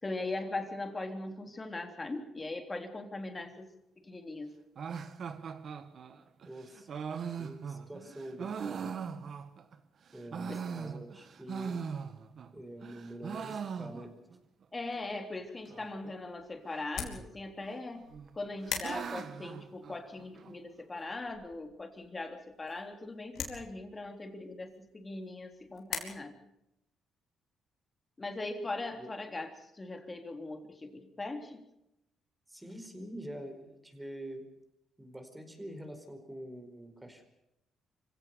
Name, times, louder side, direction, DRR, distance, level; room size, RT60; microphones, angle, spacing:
voice 1, 0.0-3.7 4.0-4.5 10.5-10.6 14.7-18.1 18.3-26.3 28.2-31.6, left 2 dB, 25° left, 5 dB, 3.6 m, -40 dB
sound 1, 4.8-9.8 10.1-12.5 12.8-14.4 14.6-14.7 14.9-15.0 15.7-16.1 17.1-17.7 18.1-20.5, right 6 dB, 55° right, 1.6 m, -40 dB
voice 2, 6.4-6.9 7.4-8.9 10.1-11.8 12.5-14.1 29.0-29.1 32.5-34.4 35.0-37.3, right 1 dB, 10° right, 6 dB, 4.8 m, -45 dB
sound 2, 15.4-26.0, left 7 dB, 75° left, 4.4 m, -45 dB
25.5 x 17.0 x 6.8 m, 0.85 s
cardioid pair, 90°, 0 cm